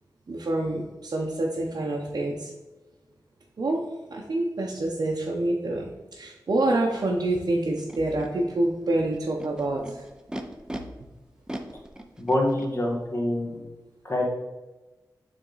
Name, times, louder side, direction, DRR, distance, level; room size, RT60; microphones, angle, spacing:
voice 1, 0.3-2.5 3.6-10.0, right 2 dB, 65° right, -2 dB, 0.8 m, -27 dB
Animal, 6.9-7.0 7.8-8.3 9.1-10.8 11.5-12.7, right 1 dB, 10° right, 0.6 m, -38 dB
voice 2, 12.2-13.6 14.0-14.2, left 1 dB, 35° left, -2 dB, 1.6 m, -25 dB
6.9 x 3.6 x 3.9 m, 1.1 s
wide cardioid pair, 75°, 7 cm